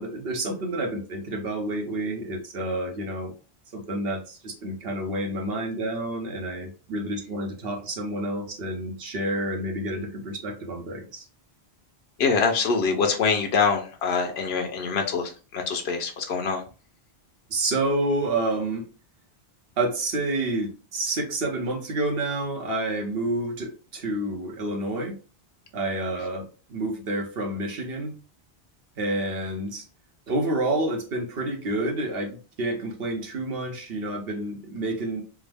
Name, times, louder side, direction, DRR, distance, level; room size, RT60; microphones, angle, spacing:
voice 1, 0.0-3.3 3.7-11.3 17.5-18.8 19.8-25.1 25.7-28.1 29.0-29.8 30.3-35.2, right 1 dB, 65° right, 1.0 m, -29 dB
voice 2, 12.2-16.6, left 5 dB, 75° left, 0.9 m, -24 dB
3.6 x 2.1 x 3.3 m
omnidirectional pair, 1.1 m